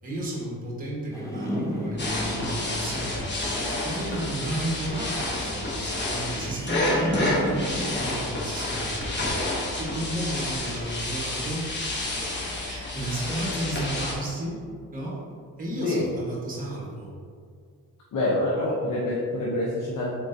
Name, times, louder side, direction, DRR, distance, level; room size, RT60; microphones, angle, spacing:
voice 1, 0.0-3.4 3.8-9.5 9.8-11.7 12.6-15.2 15.6-17.1, right 1 dB, 25° right, -5 dB, 1.2 m, -33 dB
sound 1, 1.1-8.0, equal, 10° left, 0.6 m, -35 dB
sound 2, 2.0-14.1, left 1 dB, 30° left, 0.9 m, -29 dB
voice 2, 18.1-20.1, left 1 dB, 60° left, -5 dB, 0.7 m, -26 dB
3.7 x 3.6 x 2.6 m, 2.2 s
cardioid pair, 85°, 35 cm